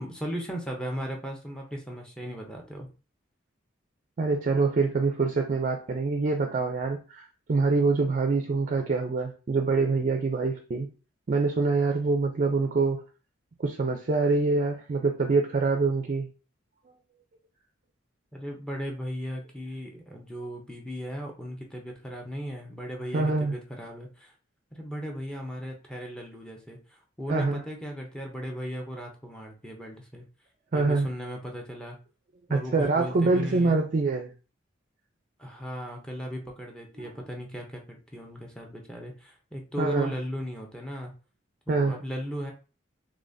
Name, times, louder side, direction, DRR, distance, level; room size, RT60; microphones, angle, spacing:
voice 1, 0.0-2.9 18.3-24.3 24.7-30.2 30.7-32.0 32.5-33.8 35.4-41.1 41.7-42.5, equal, 5° left, 0 dB, 0.6 m, -37 dB
voice 2, 4.2-10.9 11.3-13.0 13.6-16.3 23.1-23.5 27.3-27.6 30.7-31.1 32.5-34.3 37.0-37.1 39.8-40.1 41.7-42.0, right 3 dB, 40° right, 5 dB, 0.4 m, -25 dB
3.9 x 3.2 x 2.6 m, 0.36 s
head